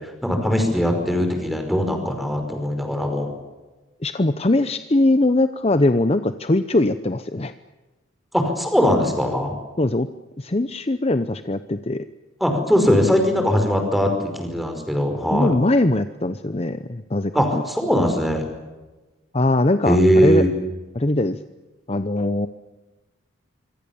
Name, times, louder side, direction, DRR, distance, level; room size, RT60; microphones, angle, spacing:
voice 1, 0.2-3.3 8.3-9.5 12.4-15.5 17.3-18.5 19.9-20.5, equal, ahead, 5 dB, 5.2 m, -20 dB
voice 2, 4.0-7.5 9.8-10.1 10.4-12.0 15.3-17.6 19.3-20.4 20.9-21.4 21.9-22.5, left 2 dB, 30° left, 11 dB, 0.8 m, -21 dB
26.5 x 24.0 x 7.2 m, 1.2 s
head